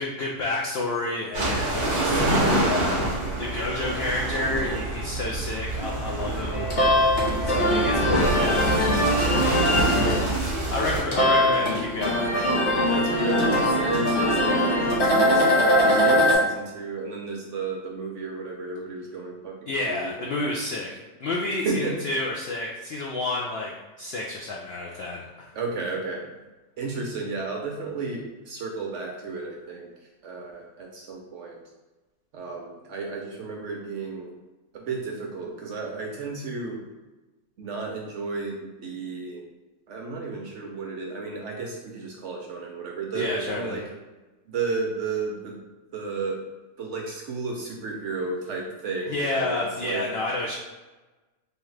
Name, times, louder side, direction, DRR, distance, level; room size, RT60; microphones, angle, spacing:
voice 1, 0.0-2.2 2.6-6.7 7.4-8.5 9.1-10.1 10.7-12.7 19.7-25.5 43.1-43.8 49.1-50.6, left 2 dB, 75° left, -2 dB, 0.5 m, -30 dB
sound 1, 1.3-11.0, right 2 dB, 30° right, 0.6 m, -27 dB
sound 2, 6.4-16.3, equal, 50° left, 1.2 m, -22 dB
voice 2, 7.3-7.8 8.1-9.2 9.8-10.1 10.9-11.6 12.9-20.4 21.6-22.0 25.5-26.3 26.8-31.6 32.3-34.3 34.7-36.8 37.6-39.4 39.9-43.8 44.5-45.6 45.9-46.4 46.8-50.1 50.5-50.6, right 4 dB, 65° right, 0 dB, 0.7 m, -33 dB
3.5 x 3.1 x 3.2 m, 1.2 s
omnidirectional pair, 1.6 m